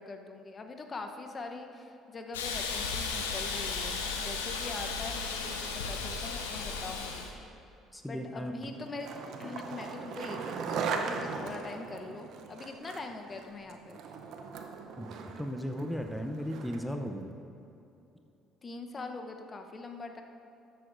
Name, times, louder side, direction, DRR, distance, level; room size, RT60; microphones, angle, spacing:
voice 1, 0.0-7.3 8.0-9.1 9.4-14.0 18.6-20.2, left 3 dB, 35° left, 5 dB, 0.9 m, -43 dB
Hiss, 2.3-7.3, left 4 dB, 85° left, 0.8 m, -35 dB
voice 2, 7.9-8.5 15.0-15.1 15.4-17.3, equal, 5° left, 4 dB, 0.7 m, -36 dB
Skateboard, 8.6-17.0, right 5 dB, 60° right, 0.7 m, -39 dB
13.0 x 7.9 x 2.6 m, 2.9 s
hypercardioid pair, 55°, 0 cm